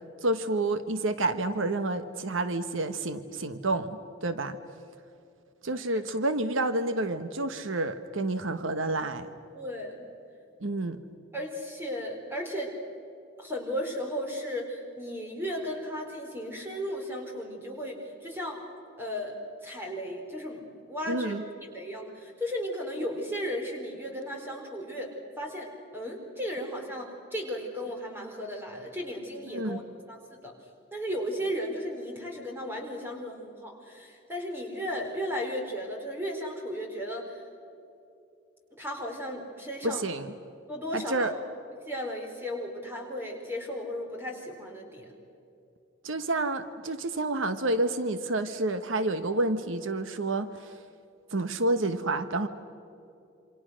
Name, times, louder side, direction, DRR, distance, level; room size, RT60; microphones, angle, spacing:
voice 1, 0.2-4.6 5.6-9.3 10.6-11.0 21.1-21.4 29.5-29.8 39.8-40.3 40.9-41.3 46.0-50.7 51.3-52.5, right 2 dB, 80° right, 10 dB, 1.2 m, -29 dB
voice 2, 9.5-10.0 11.3-12.7 13.4-18.6 19.0-19.4 19.6-21.3 21.6-25.7 25.9-29.8 30.1-30.5 30.9-37.4 38.8-40.0 40.7-41.3 41.9-45.1, equal, 10° right, 1 dB, 4.3 m, -35 dB
28.0 x 26.5 x 6.4 m, 2.7 s
head